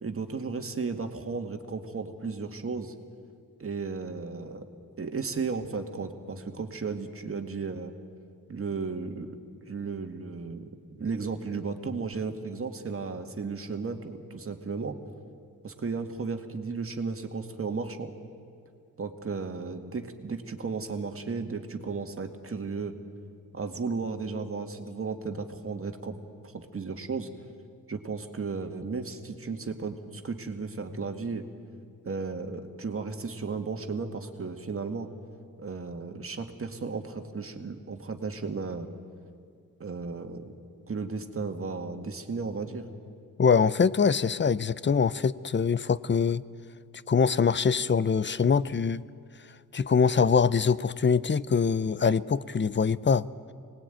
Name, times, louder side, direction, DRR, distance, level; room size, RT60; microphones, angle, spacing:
voice 1, 0.0-2.9 3.6-4.6 5.0-7.9 8.5-9.4 9.7-10.7 11.0-15.0 15.6-18.1 19.0-23.0 23.5-26.2 26.4-27.3 27.9-31.5 32.0-35.1 35.6-38.9 39.8-40.5 40.9-42.9, right 4 dB, 40° right, 5 dB, 2.1 m, -34 dB
voice 2, 43.4-46.4 47.1-49.0 49.7-53.3, left 6 dB, 35° left, 18 dB, 0.6 m, -23 dB
25.0 x 19.5 x 9.2 m, 2.2 s
cardioid pair, 80°, 34 cm